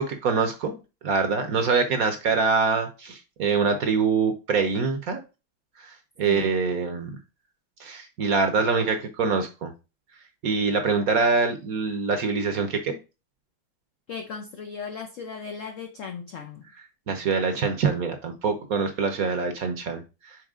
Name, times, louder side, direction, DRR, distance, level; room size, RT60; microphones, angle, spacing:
voice 1, 0.0-5.2 5.8-7.2 7.8-9.7 10.4-13.0 17.1-20.4, right 4 dB, 60° right, 1.1 m, -25 dB
voice 2, 6.2-6.5 14.1-16.6, left 6 dB, 75° left, 0.7 m, -36 dB
6.4 x 4.1 x 3.6 m
omnidirectional pair, 2.2 m